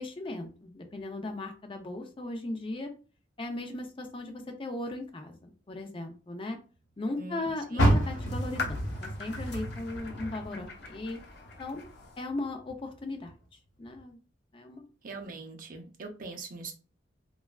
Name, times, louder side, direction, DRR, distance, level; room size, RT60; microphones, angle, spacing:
voice 1, 0.0-2.9 3.4-6.6 7.0-11.2 11.6-11.9 12.2-13.3 13.8-14.2 14.5-14.8, left 2 dB, 30° left, 5 dB, 0.5 m, -37 dB
voice 2, 7.2-7.9 15.0-16.7, right 3 dB, 45° right, 3 dB, 0.6 m, -42 dB
Car, 7.7-11.0 11.4-12.8 13.2-13.3 13.9-14.0, equal, 85° left, 0.9 m, -30 dB
stone on thin ice, 8.3-12.3, left 4 dB, 60° left, 0.8 m, -42 dB
3.2 x 2.3 x 2.3 m, 0.36 s
head